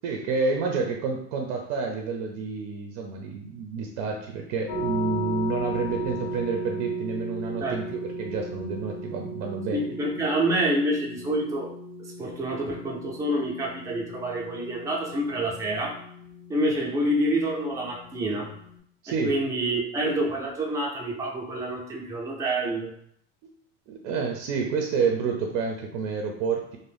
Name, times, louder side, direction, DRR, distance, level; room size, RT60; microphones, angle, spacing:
voice 1, 0.0-9.8 19.0-19.3 23.4-23.5 23.9-26.8, right 4 dB, 65° right, 2 dB, 0.5 m, -29 dB
sound 1, 4.7-18.8, right 1 dB, 75° left, 0.8 m, -36 dB
voice 2, 9.7-11.7 12.0-16.0 16.5-18.5 19.2-22.9, right 1 dB, 10° right, -2 dB, 0.4 m, -27 dB
2.5 x 2.1 x 3.3 m, 0.68 s
supercardioid pair, 135°, 31 cm